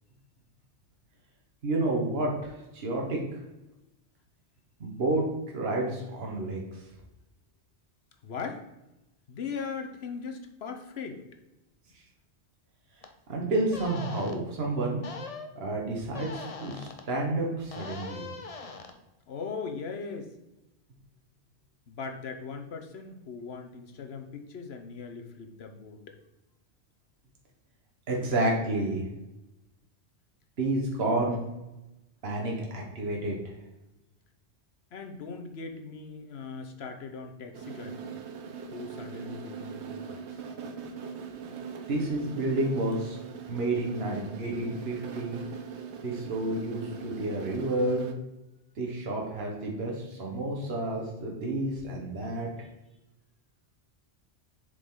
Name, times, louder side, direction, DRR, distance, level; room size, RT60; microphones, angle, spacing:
voice 1, 1.6-3.4 4.8-5.3 5.5-6.8 13.3-15.0 15.6-18.3 28.1-29.1 30.6-31.4 32.2-33.5 41.9-43.2 43.5-45.4 46.0-48.1 48.8-52.5, right 2 dB, 60° right, -1 dB, 1.5 m, -30 dB
voice 2, 8.2-8.7 9.3-11.2 19.3-20.3 21.9-26.2 34.9-38.2 38.7-40.4, left 5 dB, 65° left, 6 dB, 1.1 m, -39 dB
sound 1, 13.0-13.1 13.7-14.4 15.0-15.5 16.1-17.0 17.7-18.9, left 4 dB, 40° left, 0.7 m, -41 dB
sound 2, 37.5-48.1, right 6 dB, 80° right, 1.0 m, -41 dB
7.4 x 5.1 x 3.8 m, 0.96 s
omnidirectional pair, 1.2 m